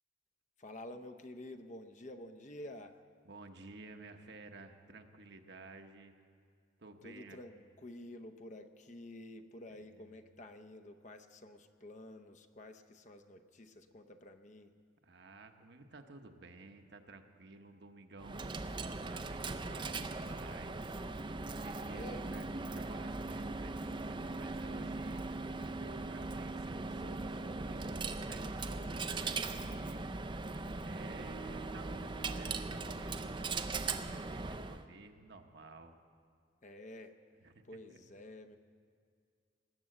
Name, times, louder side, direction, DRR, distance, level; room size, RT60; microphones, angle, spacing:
voice 1, 0.6-3.0 7.0-14.8 21.8-22.2 36.6-37.2 37.6-38.6, left 1 dB, 40° left, 8 dB, 0.7 m, -50 dB
voice 2, 3.2-6.1 6.8-7.4 10.0-10.1 15.0-18.8 19.1-21.0 21.5-25.2 25.7-30.0 30.8-35.9 37.4-37.5 37.9-38.0, right 3 dB, 60° right, 5 dB, 1.0 m, -54 dB
Coin (dropping), 18.2-34.8, right 3 dB, 25° right, 0.5 m, -39 dB
19.5 x 8.3 x 7.7 m, 2.2 s
head